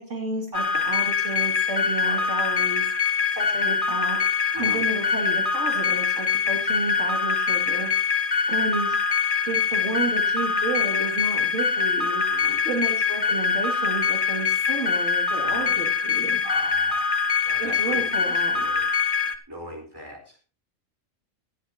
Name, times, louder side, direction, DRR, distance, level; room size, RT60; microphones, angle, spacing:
voice 1, 0.0-7.9 8.5-9.0 9.5-16.4 17.6-18.6, right 2 dB, 60° right, 1 dB, 2.9 m, -32 dB
sound 1, 0.5-19.3, left 5 dB, 40° left, 1.5 m, -24 dB
voice 2, 2.0-2.3 4.5-4.8 12.3-12.6 15.4-15.8 16.4-17.1 17.4-18.9 19.5-20.4, right 1 dB, 15° right, 2 dB, 4.5 m, -39 dB
18.5 x 13.5 x 2.9 m, 0.34 s
omnidirectional pair, 1.4 m